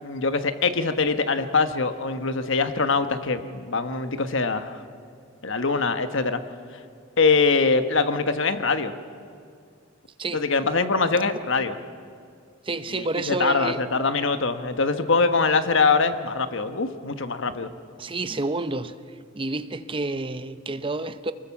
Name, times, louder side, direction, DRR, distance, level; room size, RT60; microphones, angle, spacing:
voice 1, 0.0-4.8 5.4-6.4 7.2-8.9 10.3-11.7 12.9-17.7, left 4 dB, 60° left, 1.2 m, -23 dB
voice 2, 12.6-13.8 18.0-19.0 19.3-21.3, right 2 dB, 25° right, 0.7 m, -29 dB
24.5 x 21.0 x 7.2 m
head